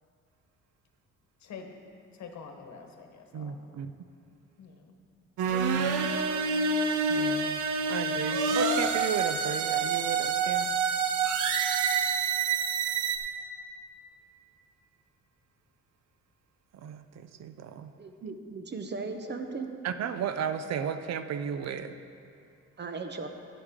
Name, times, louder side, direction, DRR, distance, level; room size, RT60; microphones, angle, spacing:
voice 1, 1.4-1.7 2.1-3.8 4.6-4.9, left 5 dB, 65° left, 4 dB, 1.2 m, -46 dB
voice 2, 3.3-3.9 7.1-7.6 7.9-10.7 16.7-17.9 19.8-21.9, right 8 dB, 60° right, 10 dB, 0.6 m, -34 dB
sound 1, 5.4-13.2, right 5 dB, 90° right, 0.8 m, -27 dB
voice 3, 18.0-19.7 22.8-23.3, right 4 dB, 35° right, 6 dB, 0.9 m, -37 dB
11.0 x 10.0 x 3.7 m, 2.5 s
cardioid pair, 90°, 30 cm